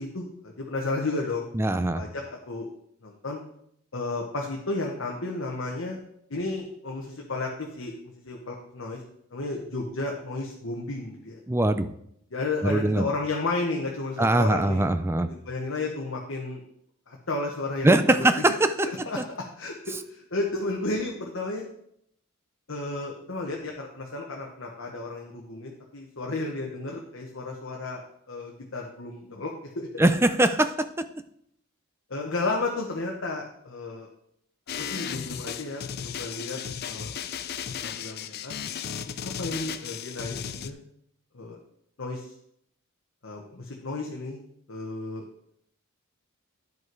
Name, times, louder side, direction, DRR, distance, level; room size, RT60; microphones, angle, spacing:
voice 1, 0.0-1.5 1.9-2.7 3.0-3.4 3.9-6.0 6.3-7.9 8.2-9.0 9.3-11.4 12.3-14.9 15.3-16.6 17.1-18.2 19.1-21.6 22.7-29.9 32.1-34.1 34.8-36.6 36.8-37.1 37.8-38.5 38.8-40.8 41.3-41.6 42.0-42.3 43.2-44.4 44.7-45.2, left 2 dB, 65° left, 0 dB, 1.2 m, -33 dB
voice 2, 1.5-2.0 11.5-11.9 12.6-13.1 14.2-15.3 17.8-18.9 30.0-31.1, right 1 dB, 10° right, 10 dB, 0.4 m, -22 dB
sound 1, 34.7-40.7, left 8 dB, 45° left, 0.4 m, -35 dB
11.0 x 5.4 x 4.7 m, 0.71 s
head